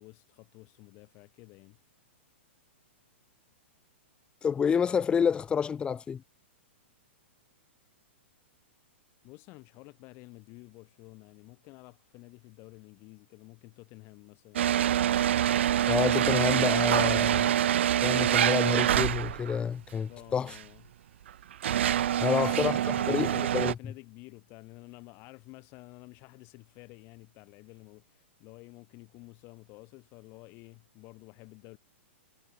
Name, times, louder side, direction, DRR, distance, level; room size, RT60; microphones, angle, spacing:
voice 1, 0.0-1.8 9.2-14.7 20.1-20.8 22.2-31.8, left 25 dB, 40° left, 2.0 m, -51 dB
voice 2, 4.4-6.2 15.9-17.5 18.0-20.5 22.2-23.7, left 7 dB, 15° left, 0.4 m, -28 dB
sound 1, 14.6-19.6 20.5-20.6 21.3-23.7, right 11 dB, 70° right, 0.6 m, -25 dB
hypercardioid pair, 125°, 7 cm